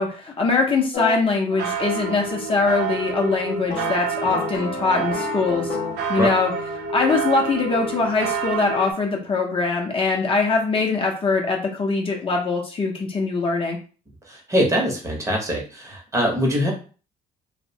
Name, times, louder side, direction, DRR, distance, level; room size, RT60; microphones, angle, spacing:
voice 1, 0.0-5.7 6.1-6.5 6.9-13.8, left 4 dB, 30° left, 1 dB, 0.5 m, -22 dB
sound 1, 0.9-1.2 3.7-6.1, left 4 dB, 55° left, 0.8 m, -31 dB
sound 2, 1.5-8.9, right 5 dB, 75° right, 0.5 m, -28 dB
voice 2, 14.3-16.7, equal, 20° right, 0 dB, 0.7 m, -23 dB
2.6 x 2.0 x 2.6 m, 0.37 s
cardioid pair, 110°, 17 cm